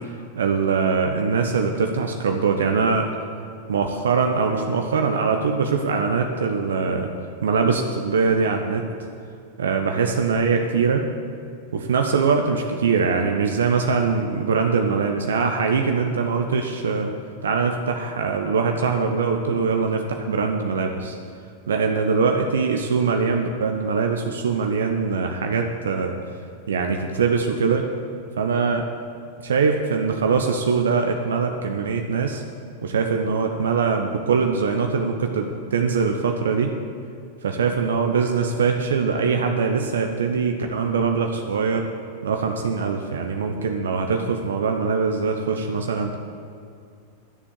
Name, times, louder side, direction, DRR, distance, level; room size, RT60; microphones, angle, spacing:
voice 1, 0.3-3.1 3.7-7.1 7.4-8.9 9.6-11.1 11.7-17.1 17.4-21.2 21.7-26.1 26.7-27.8 28.4-28.9 29.4-32.4 32.8-36.7 37.4-41.9 42.2-46.2, right 5 dB, 65° right, 4 dB, 0.9 m, -22 dB
12.5 x 7.1 x 8.4 m, 2.4 s
figure-of-eight pair, 90°, 0 cm